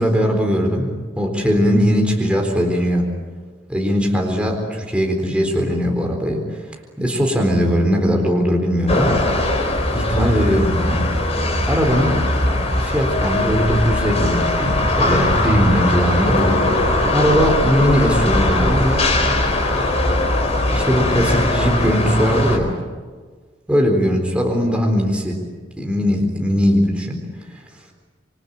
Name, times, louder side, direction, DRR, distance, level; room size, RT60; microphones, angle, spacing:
voice 1, 0.0-3.1 3.7-6.6 7.0-9.2 9.9-11.1 11.7-12.2 12.5-16.7 17.1-19.0 20.7-22.7 23.7-25.4 25.8-27.2 27.5-27.6, equal, 5° right, 1 dB, 4.0 m, -19 dB
sound 1, 8.9-22.6, left 1 dB, 35° left, 4.4 m, -20 dB
27.5 x 24.5 x 8.8 m, 1.5 s
head